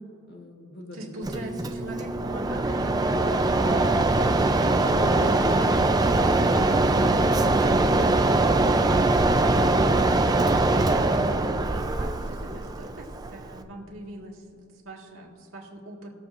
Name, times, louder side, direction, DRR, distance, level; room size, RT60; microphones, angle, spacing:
voice 1, 0.3-1.4 3.6-4.0 4.4-6.6, left 1 dB, 50° left, 1 dB, 1.2 m, -41 dB
voice 2, 0.9-4.0 9.8-10.6 11.1-16.1, right 2 dB, 75° right, -2 dB, 1.8 m, -42 dB
Mechanisms, 1.2-13.6, right 2 dB, 20° right, 0.4 m, -22 dB
20.5 x 7.0 x 2.5 m, 2.8 s
head